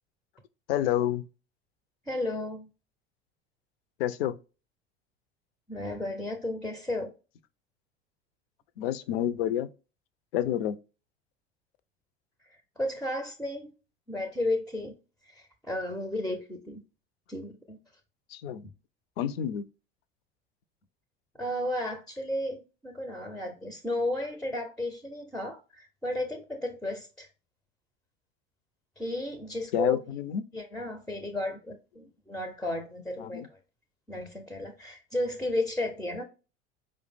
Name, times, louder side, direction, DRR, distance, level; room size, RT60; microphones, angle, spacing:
voice 1, 0.7-1.2 4.0-4.3 8.8-9.7 10.3-10.8 18.3-18.6 19.2-19.6 29.7-30.4 33.2-33.5, left 11 dB, 60° left, 0.5 m, -29 dB
voice 2, 2.1-2.7 5.7-7.1 12.8-13.7 14.1-15.0 15.3-16.8 17.3-17.8 21.4-27.3 29.0-30.0 30.5-33.4 34.1-36.2, left 1 dB, ahead, 0.4 m, -33 dB
4.8 x 2.1 x 3.3 m
figure-of-eight pair, 75°, 34 cm